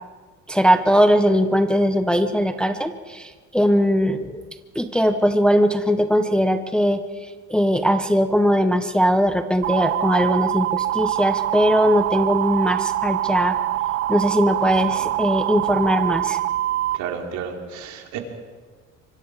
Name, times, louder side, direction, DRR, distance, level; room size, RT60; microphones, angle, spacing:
voice 1, 0.5-4.4 4.7-13.6 14.1-16.4, equal, 5° left, 7 dB, 0.6 m, -20 dB
sound 1, 9.6-17.0, right 14 dB, 45° right, 0.6 m, -24 dB
voice 2, 16.9-18.2, right 7 dB, 65° right, 3 dB, 3.1 m, -32 dB
25.5 x 24.0 x 4.7 m, 1.5 s
cardioid pair, 165°, 31 cm